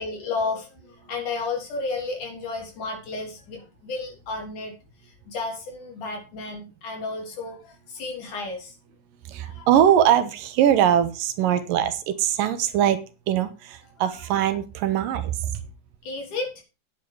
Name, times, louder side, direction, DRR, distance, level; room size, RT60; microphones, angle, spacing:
voice 1, 0.0-4.7 5.0-8.8 9.4-9.7 14.0-14.2 16.0-16.5, left 3 dB, 65° left, 1 dB, 4.8 m, -32 dB
voice 2, 9.3-13.0 13.3-15.6, right 10 dB, 85° right, 11 dB, 2.7 m, -21 dB
9.7 x 9.0 x 4.9 m, 0.31 s
omnidirectional pair, 3.9 m